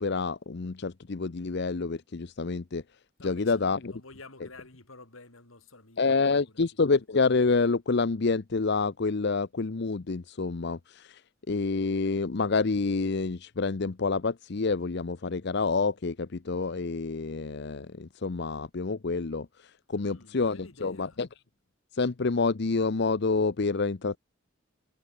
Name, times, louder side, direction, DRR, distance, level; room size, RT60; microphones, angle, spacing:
voice 1, 0.0-2.8 3.2-3.9 6.0-11.2 11.5-21.3 21.9-24.2, left 4 dB, 55° left, 0.7 m, -28 dB
voice 2, 3.2-6.7 19.9-21.2, left 3 dB, 85° left, 4.7 m, -51 dB
head